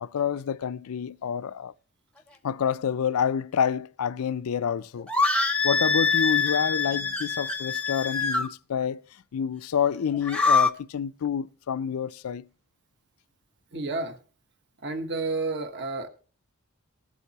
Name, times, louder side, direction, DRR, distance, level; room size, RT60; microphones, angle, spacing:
voice 1, 0.0-1.7 2.4-5.1 5.6-9.0 9.3-12.4, left 7 dB, 85° left, 0.4 m, -28 dB
sound 1, 5.1-8.5 10.1-10.7, left 4 dB, 5° left, 0.7 m, -24 dB
voice 2, 13.7-14.2 14.8-16.1, right 3 dB, 55° right, 1.1 m, -30 dB
19.5 x 8.1 x 2.9 m
head